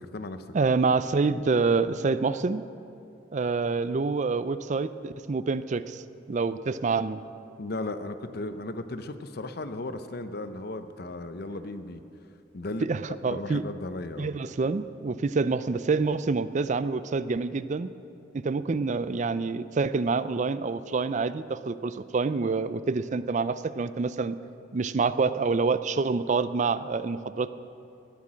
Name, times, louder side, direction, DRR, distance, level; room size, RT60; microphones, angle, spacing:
voice 1, 0.0-0.4 7.6-12.0 12.5-12.9 13.3-14.3, left 2 dB, 55° left, 10 dB, 0.7 m, -35 dB
voice 2, 0.5-2.6 3.3-6.0 6.3-7.2 12.8-13.6 14.2-17.9 18.3-24.4 24.7-27.5, right 4 dB, 40° right, 14 dB, 0.4 m, -27 dB
19.0 x 8.3 x 6.2 m, 2.8 s
head